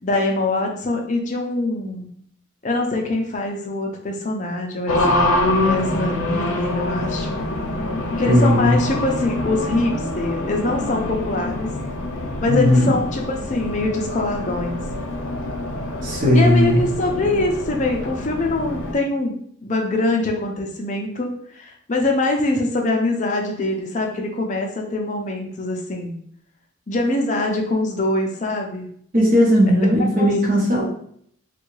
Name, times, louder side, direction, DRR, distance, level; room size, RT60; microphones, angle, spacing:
voice 1, 0.0-2.1 2.6-5.3 5.6-7.4 8.2-11.7 12.4-14.8 16.3-26.1 26.9-28.9 30.2-30.8, left 2 dB, 35° left, 2 dB, 0.5 m, -24 dB
Race car auto racing, 4.9-18.9, left 1 dB, 80° left, 0.6 m, -25 dB
voice 2, 8.2-8.8 12.4-12.9 16.0-16.8 29.1-30.8, left 1 dB, 40° right, -2 dB, 0.8 m, -16 dB
3.4 x 2.3 x 3.1 m, 0.65 s
head